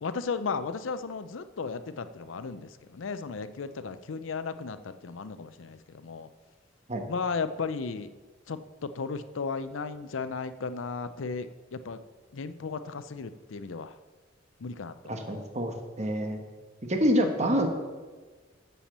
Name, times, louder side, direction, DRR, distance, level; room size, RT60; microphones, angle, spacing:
voice 1, 0.0-6.3 7.1-8.1 8.5-12.0 12.3-13.9 14.6-15.1, left 4 dB, 85° left, 12 dB, 0.5 m, -35 dB
voice 2, 15.1-16.4 16.9-17.7, equal, 35° right, 4 dB, 1.1 m, -27 dB
7.2 x 7.0 x 7.3 m, 1.4 s
head